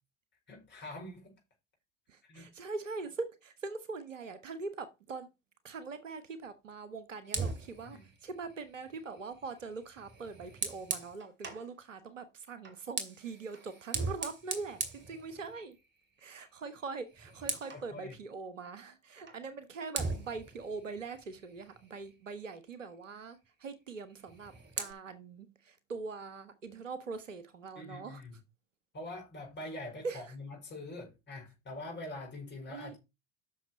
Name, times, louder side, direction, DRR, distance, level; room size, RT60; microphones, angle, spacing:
voice 1, 0.5-1.3 2.3-2.5 7.8-8.0 17.7-18.1 27.7-28.3 28.9-33.0, left 2 dB, 30° left, 4.9 m, -44 dB
voice 2, 2.1-5.3 5.6-15.8 16.2-28.2 30.0-30.3 32.7-32.9, right 4 dB, 80° right, 1.2 m, -42 dB
Fire, 7.2-11.7 12.6-15.9 16.2-16.5 16.8-17.9 19.3-19.4 19.9-22.3 24.1-24.9, right 4 dB, 30° right, 2.4 m, -40 dB
8.2 x 6.4 x 4.8 m
figure-of-eight pair, 75°, 37 cm